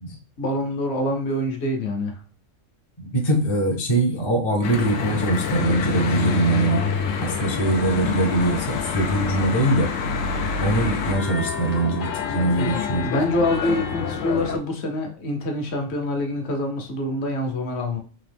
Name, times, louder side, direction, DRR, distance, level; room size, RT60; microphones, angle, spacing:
voice 1, 0.4-2.1 12.3-18.0, left 1 dB, 60° left, 2 dB, 1.1 m, -26 dB
voice 2, 3.0-6.8 7.2-9.9 10.6-13.1, right 2 dB, 35° left, -1 dB, 0.5 m, -22 dB
Church bell / Traffic noise roadway noise, 4.6-14.6, left 6 dB, 85° left, 1.0 m, -27 dB
3.8 x 2.8 x 3.4 m, 0.37 s
omnidirectional pair, 1.3 m